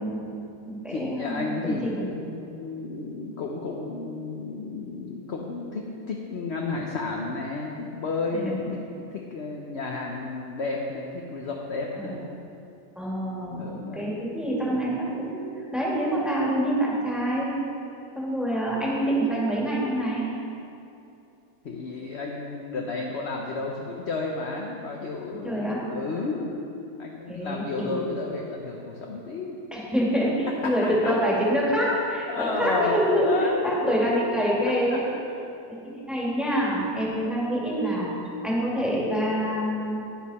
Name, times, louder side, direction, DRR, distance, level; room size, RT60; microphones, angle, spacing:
voice 1, 0.0-2.0 8.3-8.7 11.9-12.1 13.0-15.4 15.7-17.5 18.2-20.3 25.4-25.8 27.3-28.0 29.7-33.4 33.6-35.1 35.8-38.1 38.4-40.1, equal, ahead, -5 dB, 1.9 m, -26 dB
voice 2, 0.9-12.2 13.6-14.3 21.6-26.5 27.0-29.6 30.6-30.7 31.0-31.1 32.2-34.0, left 3 dB, 50° left, 0 dB, 0.9 m, -32 dB
10.5 x 9.7 x 4.2 m, 2.7 s
omnidirectional pair, 1.8 m